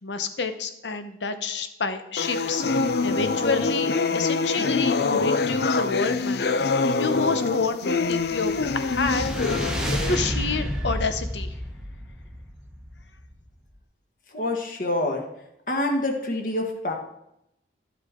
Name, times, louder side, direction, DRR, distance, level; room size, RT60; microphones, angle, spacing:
voice 1, 0.0-6.4 7.0-9.2 10.1-11.5, left 4 dB, 90° left, 9 dB, 0.9 m, -28 dB
sound 1, 2.2-10.2, left 4 dB, 65° left, 0.5 m, -25 dB
sound 2, 8.0-13.5, equal, 5° right, 1.0 m, -31 dB
voice 2, 14.3-15.2 15.7-16.9, left 1 dB, 50° left, 2 dB, 1.6 m, -26 dB
12.0 x 7.9 x 3.8 m, 0.82 s
head